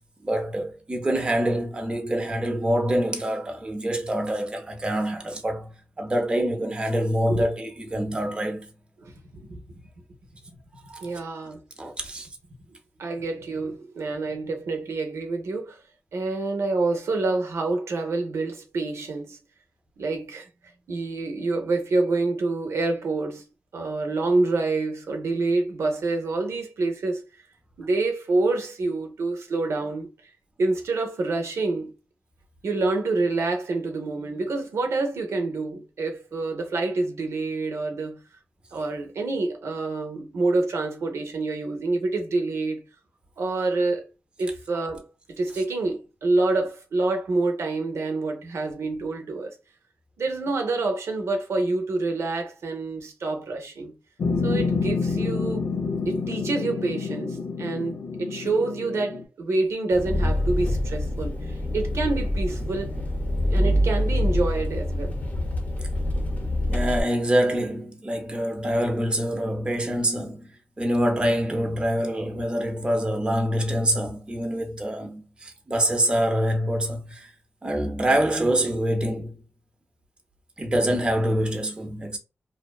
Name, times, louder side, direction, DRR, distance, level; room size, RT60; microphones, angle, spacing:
voice 1, 0.2-5.7 6.0-8.7 10.9-11.1 11.8-12.3 66.7-70.5 70.8-77.3 77.6-79.4 80.6-82.2, right 1 dB, 20° right, 0.5 m, -25 dB
voice 2, 9.0-9.6 11.0-11.6 13.0-15.8 16.1-19.4 20.0-20.5 20.9-23.4 23.7-27.2 27.8-30.1 30.6-31.9 32.6-38.2 38.7-42.8 43.4-44.0 44.4-49.6 50.2-53.9 54.4-55.7 56.1-62.9 63.5-65.2, right 3 dB, 75° right, 0.6 m, -27 dB
sound 1, 54.2-59.2, left 4 dB, 70° left, 0.4 m, -28 dB
Engine, 59.9-67.0, left 1 dB, 35° left, 0.6 m, -25 dB
2.6 x 2.1 x 2.3 m
wide cardioid pair, 105°, 5 cm